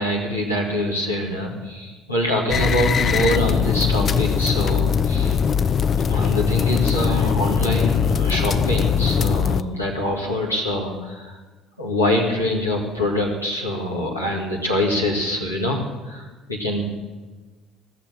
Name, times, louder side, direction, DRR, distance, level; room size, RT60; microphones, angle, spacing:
voice 1, 0.0-5.4 6.1-11.4 11.8-16.9, left 1 dB, 90° left, -3 dB, 2.2 m, -24 dB
sound 1, 2.5-9.6, left 7 dB, 40° left, 0.5 m, -20 dB
16.0 x 6.8 x 9.0 m, 1.3 s
figure-of-eight pair, 55°, 0 cm